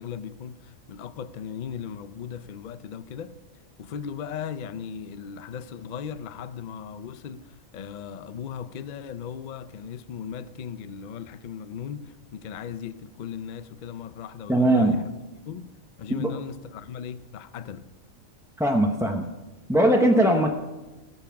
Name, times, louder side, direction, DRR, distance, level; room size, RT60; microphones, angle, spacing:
voice 1, 0.0-3.4 3.8-15.0 15.5-15.7 16.0-17.9, left 7 dB, 55° left, 0.5 m, -37 dB
voice 2, 14.5-15.0 16.1-16.3 18.6-19.3 19.7-20.5, right 1 dB, 5° right, 0.6 m, -20 dB
19.0 x 7.3 x 5.8 m
omnidirectional pair, 1.4 m